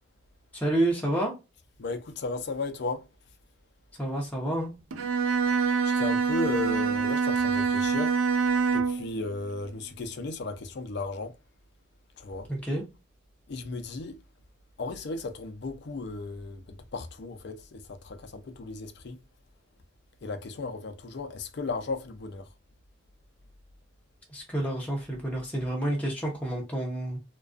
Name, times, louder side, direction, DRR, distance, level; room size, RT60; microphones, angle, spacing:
voice 1, 0.5-1.3 4.0-4.7 12.5-12.8 24.3-27.2, right 1 dB, 5° left, 0.6 m, -29 dB
voice 2, 1.8-3.0 5.8-8.2 8.7-11.3 12.2-12.5 13.5-14.2 14.8-19.2 20.2-22.5, left 3 dB, 55° left, 0.4 m, -35 dB
Bowed string instrument, 4.9-9.1, right 5 dB, 80° right, 0.4 m, -25 dB
2.3 x 2.2 x 2.4 m
head